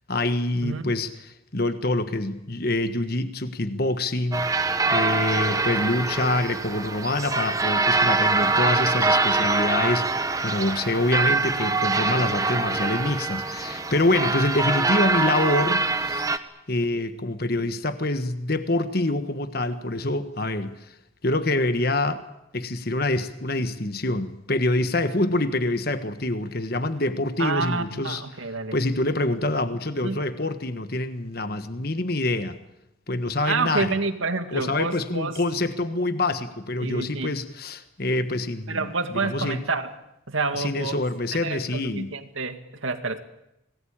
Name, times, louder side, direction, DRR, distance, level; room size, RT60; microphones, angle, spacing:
voice 1, 0.1-4.5 4.9-16.3 16.7-20.8 21.2-22.2 22.5-32.6 33.1-33.9 34.5-39.6 40.5-42.1, left 2 dB, 50° left, 10 dB, 1.4 m, -26 dB
sound 1, 4.3-16.4, right 3 dB, 15° right, 1.1 m, -24 dB
voice 2, 27.4-28.8 30.0-30.2 33.4-35.4 36.8-37.3 38.7-39.9 40.3-41.0 41.3-43.2, right 3 dB, 85° right, 8 dB, 2.2 m, -28 dB
26.0 x 19.5 x 8.9 m, 0.86 s
head